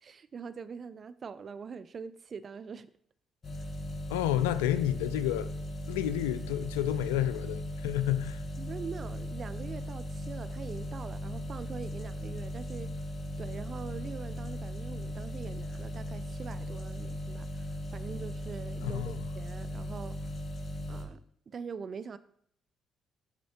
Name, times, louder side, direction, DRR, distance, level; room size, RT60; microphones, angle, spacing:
voice 1, 0.0-2.9 8.6-12.9 13.4-20.3 20.9-22.2, right 6 dB, 50° right, 0.4 m, -43 dB
sound 1, 3.4-21.0, left 1 dB, 50° left, 1.2 m, -38 dB
voice 2, 4.1-5.5 5.9-8.4 18.8-19.2, left 13 dB, 90° left, 0.3 m, -30 dB
12.0 x 4.1 x 2.9 m
hypercardioid pair, 50°, 0 cm